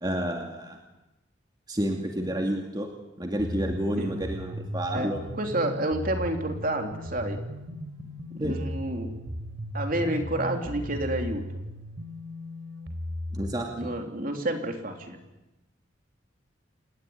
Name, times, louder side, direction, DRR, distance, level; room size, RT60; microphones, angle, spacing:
voice 1, 0.0-0.8 1.7-2.9 3.2-5.2 8.4-8.5 13.3-13.9, right 1 dB, 20° right, 2 dB, 2.5 m, -30 dB
sound 1, 3.4-13.5, equal, 80° right, 4.2 m, -36 dB
voice 2, 5.4-7.4 8.4-9.1 9.7-11.5 13.8-15.2, right 1 dB, 45° right, 4 dB, 3.5 m, -29 dB
28.0 x 19.5 x 9.6 m, 0.99 s
head